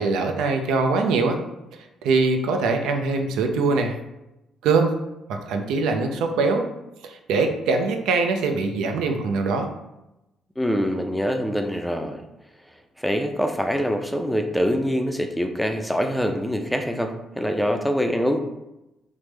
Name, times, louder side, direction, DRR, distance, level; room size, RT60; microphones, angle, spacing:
voice 1, 0.0-1.4 2.0-3.9 4.6-4.9 5.3-6.6 7.0-9.7, right 4 dB, 90° right, 5 dB, 0.3 m, -22 dB
voice 2, 10.6-12.2 13.0-18.4, equal, ahead, 5 dB, 0.3 m, -24 dB
3.2 x 2.0 x 3.2 m, 0.93 s
cardioid pair, 90°, 0 cm